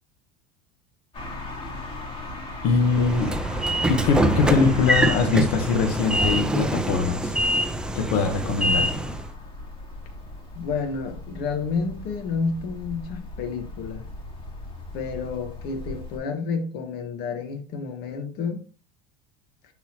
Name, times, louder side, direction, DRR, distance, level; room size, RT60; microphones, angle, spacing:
sound 1, 1.1-16.2, left 2 dB, 25° left, 2.8 m, -38 dB
voice 1, 2.6-3.3 3.9-7.3 7.9-8.9, left 5 dB, 75° left, 1.2 m, -22 dB
Train / Sliding door, 2.8-9.3, right 1 dB, 5° right, 0.5 m, -24 dB
voice 2, 10.5-14.1 14.9-18.6, left 5 dB, 50° left, 1.5 m, -30 dB
10.5 x 4.1 x 2.9 m
supercardioid pair, 130°, 20 cm